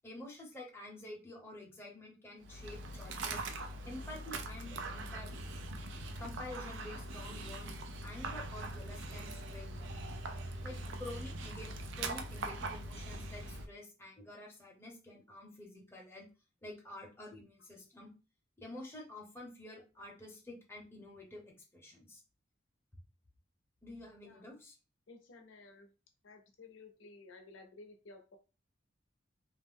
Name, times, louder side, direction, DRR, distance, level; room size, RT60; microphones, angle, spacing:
voice 1, 0.0-3.4 3.8-5.3 6.2-7.7 8.0-9.9 10.6-11.7 11.9-16.3 16.6-18.1 18.6-22.2 23.8-24.7, left 1 dB, 15° left, -1 dB, 0.7 m, -49 dB
Dog, 2.4-13.7, right 2 dB, 65° right, 0.4 m, -42 dB
voice 2, 25.1-25.9 26.2-28.4, left 3 dB, 75° left, 4 dB, 0.6 m, -55 dB
2.4 x 2.0 x 3.5 m, 0.32 s
head